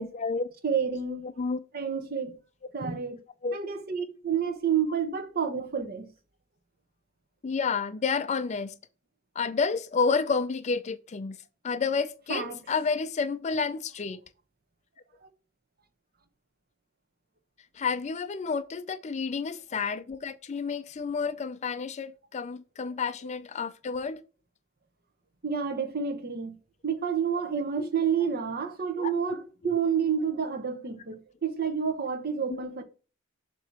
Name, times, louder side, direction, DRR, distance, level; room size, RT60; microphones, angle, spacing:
voice 1, 0.0-0.5 1.4-1.6 3.4-3.6 7.4-8.7 9.4-11.4 11.6-14.2 17.8-24.2 27.8-27.9 29.0-29.4, left 5 dB, 35° left, 0.4 m, -30 dB
voice 2, 0.6-1.3 1.7-2.4 2.7-3.2 3.5-6.1 12.3-12.6 15.2-15.3 25.4-26.5 26.8-32.8, right 7 dB, 50° right, 0.9 m, -29 dB
7.0 x 3.0 x 5.9 m
head